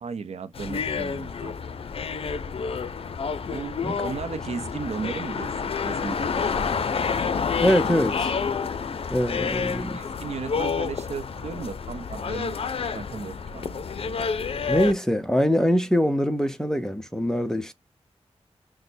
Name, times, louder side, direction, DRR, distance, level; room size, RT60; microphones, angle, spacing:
voice 1, 0.0-1.6 3.5-6.7 9.4-12.6 12.9-13.8, right 5 dB, 80° right, 0.6 m, -36 dB
sound 1, 0.5-14.9, left 5 dB, 60° left, 0.5 m, -29 dB
voice 2, 7.6-8.3 9.1-10.0 14.7-17.7, equal, 5° left, 0.7 m, -23 dB
6.2 x 2.1 x 2.6 m
wide cardioid pair, 125°, 11 cm